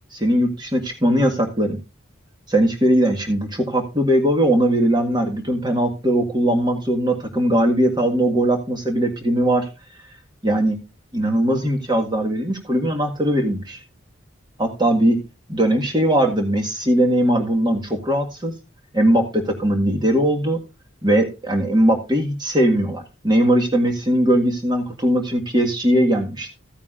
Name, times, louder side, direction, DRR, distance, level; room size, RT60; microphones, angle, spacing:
voice 1, 0.1-1.8 2.5-9.7 10.4-10.8 11.1-13.8 14.6-15.2 15.5-18.5 18.9-20.6 21.0-26.5, right 1 dB, 20° right, 3 dB, 1.8 m, -20 dB
14.5 x 9.1 x 2.5 m, 0.28 s
head